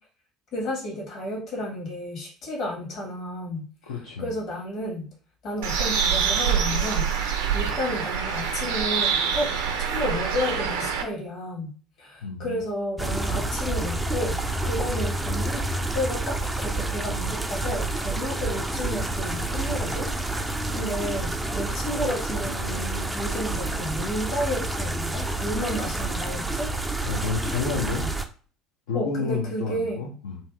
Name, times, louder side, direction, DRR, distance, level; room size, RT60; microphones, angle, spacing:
voice 1, 0.5-3.7 4.2-5.1 5.4-7.1 7.5-9.5 9.8-15.7 15.9-20.1 20.7-26.7 27.7-27.8 28.9-30.0, left 1 dB, 50° left, -2 dB, 1.3 m, -32 dB
voice 2, 3.9-4.3 12.2-12.6 27.1-28.1 28.9-30.4, left 4 dB, 65° left, -3 dB, 0.6 m, -30 dB
Bird, 5.6-11.0, right 7 dB, 65° right, 0.5 m, -25 dB
sound 1, 13.0-28.2, right 2 dB, 10° right, 0.4 m, -29 dB
2.8 x 2.7 x 2.3 m, 0.40 s
figure-of-eight pair, 60°, 0 cm